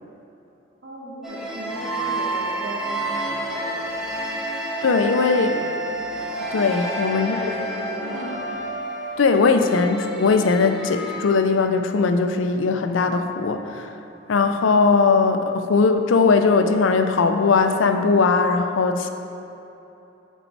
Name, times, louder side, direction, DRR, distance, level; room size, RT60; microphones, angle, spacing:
voice 1, 0.8-4.0 5.3-5.8 7.2-8.6, right 1 dB, 85° right, -4 dB, 1.6 m, -36 dB
sound 1, 1.2-11.2, right 1 dB, ahead, 0.7 m, -29 dB
voice 2, 4.8-5.5 6.5-7.4 9.2-13.9 14.3-19.1, left 4 dB, 90° left, 6 dB, 0.5 m, -19 dB
8.0 x 4.5 x 4.6 m, 3.0 s
head